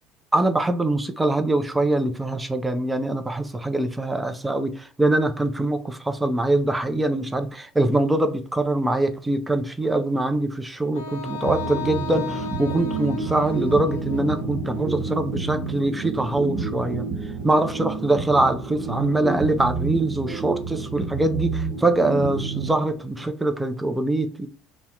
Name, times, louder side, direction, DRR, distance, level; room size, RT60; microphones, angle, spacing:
voice 1, 0.3-17.1 17.4-24.5, right 2 dB, 10° right, 0.4 m, -23 dB
Wind instrument woodwind instrument, 10.9-15.0, left 4 dB, 75° left, 0.4 m, -36 dB
sound 1, 11.4-23.3, right 4 dB, 40° right, 1.1 m, -29 dB
2.7 x 2.1 x 3.6 m
figure-of-eight pair, 60°, 0 cm